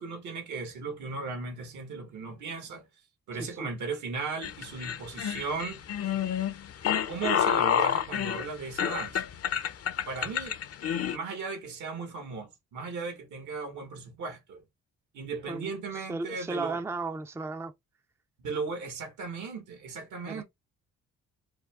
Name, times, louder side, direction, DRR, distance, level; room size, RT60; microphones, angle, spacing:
voice 1, 0.0-2.8 3.3-5.8 7.1-9.2 10.1-10.6 11.0-14.6 15.1-16.8 18.4-20.4, right 4 dB, 75° right, 1.9 m, -36 dB
sound 1, 4.4-11.2, left 9 dB, 50° left, 0.7 m, -29 dB
voice 2, 15.5-17.7 20.2-20.4, right 3 dB, 10° right, 0.5 m, -35 dB
4.8 x 2.3 x 3.6 m
cardioid pair, 90°, 30 cm